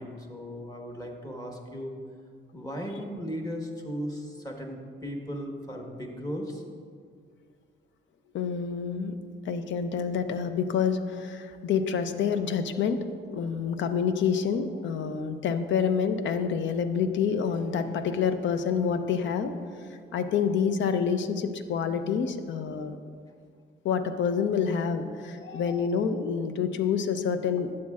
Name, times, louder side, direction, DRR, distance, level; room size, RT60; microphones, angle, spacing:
voice 1, 0.0-2.0 2.5-6.6, equal, 20° left, 1 dB, 1.3 m, -36 dB
voice 2, 8.3-9.1 9.4-19.5 20.1-23.0 23.8-27.7, left 6 dB, 70° left, 9 dB, 0.6 m, -27 dB
11.5 x 7.5 x 2.4 m, 2.1 s
cardioid pair, 90°, 20 cm